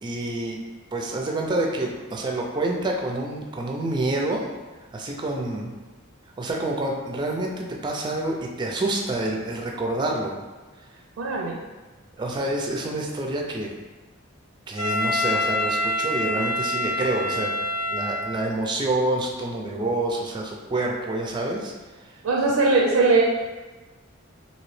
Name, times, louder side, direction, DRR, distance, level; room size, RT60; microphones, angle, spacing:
voice 1, 0.0-0.6 0.9-4.5 4.9-5.7 6.4-10.3 12.2-13.7 14.7-17.5 17.9-21.7, right 2 dB, 20° right, 0 dB, 0.4 m, -27 dB
voice 2, 11.2-11.6 22.2-23.2, right 3 dB, 90° right, -1 dB, 0.4 m, -20 dB
Wind instrument woodwind instrument, 14.8-18.6, left 1 dB, 70° left, 0.9 m, -26 dB
2.9 x 2.8 x 3.1 m, 1.3 s
head